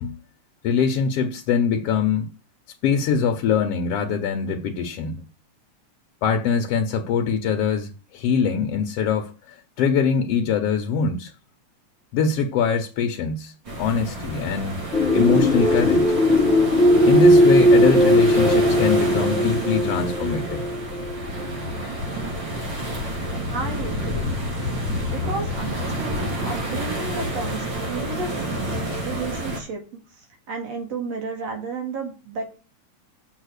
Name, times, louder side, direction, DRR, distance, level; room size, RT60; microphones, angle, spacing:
voice 1, 0.6-2.3 2.8-5.2 6.2-11.3 12.1-14.8 15.1-16.2 17.0-20.6, left 6 dB, 65° left, 1.7 m, -23 dB
sound 1, 13.6-29.6, equal, 40° right, 3.5 m, -29 dB
sound 2, 14.9-21.5, left 1 dB, 30° left, 1.8 m, -18 dB
voice 2, 23.5-24.4 25.1-28.3 29.0-29.8 30.1-32.4, right 4 dB, 60° right, 3.1 m, -32 dB
7.3 x 6.6 x 6.5 m
omnidirectional pair, 3.3 m